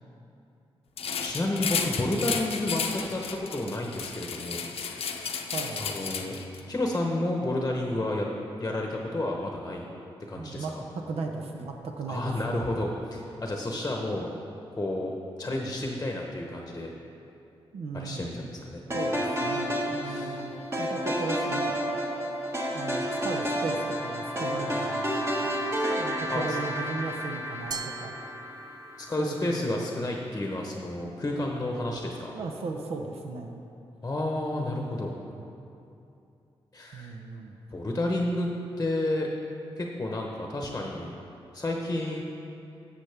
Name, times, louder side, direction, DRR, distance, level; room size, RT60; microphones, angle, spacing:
sound 1, 1.0-6.6, left 6 dB, 75° left, 0.6 m, -33 dB
voice 1, 1.2-5.2 5.8-6.4 6.7-8.3 8.6-9.8 10.3-10.8 12.1-14.3 14.7-16.9 17.9-18.8 20.0-20.4 26.3-26.6 29.0-32.3 34.0-35.1 36.7-37.2 37.7-38.5 38.8-39.3 39.8-41.1 41.5-42.2, left 1 dB, 25° left, 1 dB, 0.9 m, -31 dB
voice 2, 5.5-5.9 10.4-12.7 17.7-18.4 18.9-21.8 22.7-25.3 25.9-28.2 29.2-29.8 32.3-33.6 34.5-35.5 36.9-37.6, right 4 dB, 85° right, 3 dB, 0.8 m, -37 dB
sound 2, 18.9-29.2, equal, 25° right, 1.4 m, -30 dB
Glass, 27.7-29.1, right 6 dB, 40° right, 0.4 m, -40 dB
12.0 x 7.3 x 3.4 m, 2.8 s
cardioid pair, 80°, 10 cm